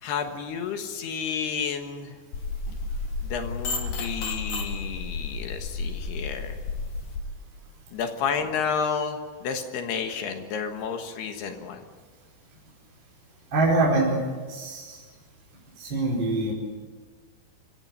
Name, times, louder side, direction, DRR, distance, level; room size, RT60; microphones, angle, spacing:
voice 1, 0.0-2.1 3.2-6.5 7.9-11.8, left 6 dB, 65° left, 6 dB, 3.1 m, -31 dB
sound 1, 2.3-7.2, left 3 dB, 50° left, 4.1 m, -32 dB
voice 2, 13.5-14.2 14.5-15.0 15.8-16.5, right 2 dB, 25° right, -4 dB, 5.0 m, -24 dB
25.5 x 15.5 x 9.7 m, 1.5 s
omnidirectional pair, 5.6 m